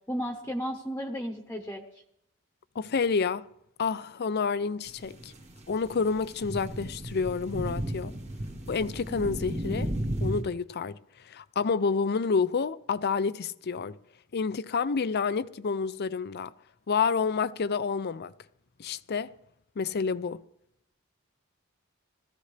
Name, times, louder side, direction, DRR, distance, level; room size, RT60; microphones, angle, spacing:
voice 1, 0.1-1.8, equal, 10° left, 1.1 m, -33 dB
voice 2, 2.8-3.5 3.8-5.3 5.7-8.1 8.7-9.9 10.2-11.0 11.3-14.0 14.3-16.5 16.9-18.3 18.8-19.3 19.8-20.4, left 5 dB, 50° left, 0.5 m, -29 dB
sound 1, 4.9-10.4, right 1 dB, 35° right, 1.8 m, -34 dB
19.5 x 14.5 x 3.3 m
head